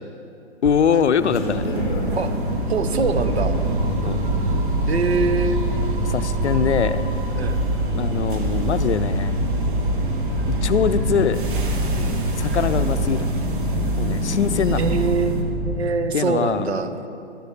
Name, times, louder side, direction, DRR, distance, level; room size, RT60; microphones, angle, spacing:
voice 1, 0.6-1.7 4.0-4.2 6.0-7.0 7.9-9.4 10.5-11.4 12.4-13.3 14.0-14.8 16.1-16.7, left 7 dB, 75° left, 12 dB, 0.5 m, -22 dB
sound 1, 0.6-12.9, left 1 dB, 20° left, 0.9 m, -39 dB
sound 2, 1.3-15.4, right 1 dB, 45° right, 1.3 m, -26 dB
voice 2, 2.7-3.6 4.9-5.6 7.4-7.6 11.9-12.2 14.8-17.1, right 5 dB, 65° right, 8 dB, 0.9 m, -24 dB
sound 3, 3.0-15.8, right 1 dB, 25° right, 1.3 m, -26 dB
12.5 x 6.4 x 4.2 m, 2.5 s
figure-of-eight pair, 135°, 34 cm